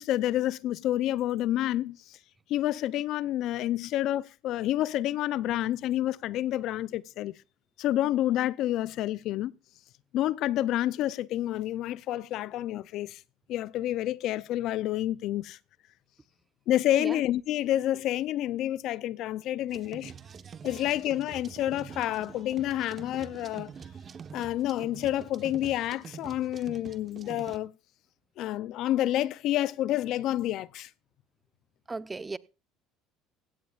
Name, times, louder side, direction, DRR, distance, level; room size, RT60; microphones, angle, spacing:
voice 1, 0.0-2.2 2.5-7.3 7.8-9.5 10.1-13.2 13.5-15.6 16.7-20.1 20.6-23.7 24.3-27.7 28.4-30.9, left 13 dB, 65° left, 0.5 m, -29 dB
sound 1, 19.7-27.6, right 6 dB, 40° right, 1.2 m, -46 dB
voice 2, 31.9-32.4, right 3 dB, 20° right, 0.8 m, -35 dB
16.5 x 16.0 x 2.5 m
supercardioid pair, 85°, 0 cm